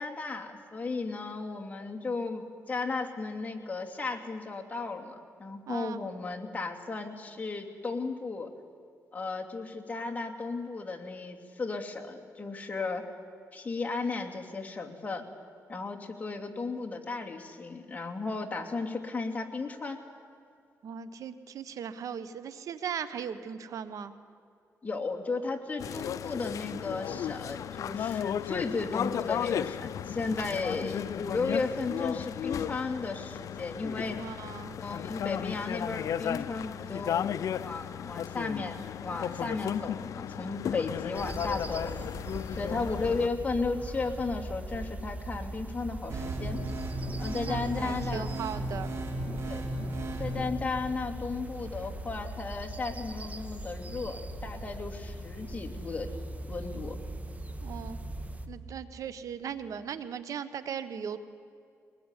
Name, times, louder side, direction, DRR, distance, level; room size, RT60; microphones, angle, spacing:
voice 1, 0.0-8.5 9.1-13.0 13.5-15.2 15.7-20.0 24.8-34.2 34.8-42.1 42.6-46.6 47.2-48.3 49.5-49.6 50.2-56.1 56.5-57.0, left 3 dB, 25° left, 2 dB, 2.8 m, -35 dB
voice 2, 5.7-6.0 20.8-24.1 34.2-34.8 47.4-48.9 57.6-58.0 58.5-61.2, right 7 dB, 75° right, 12 dB, 1.3 m, -38 dB
sound 1, 25.8-43.3, left 9 dB, 70° left, 0.6 m, -34 dB
sound 2, 41.1-58.5, right 1 dB, 25° right, 2.0 m, -40 dB
sound 3, 46.1-50.5, right 1 dB, 55° right, 4.3 m, -35 dB
23.5 x 20.0 x 9.9 m, 2.4 s
cardioid pair, 95°, 6 cm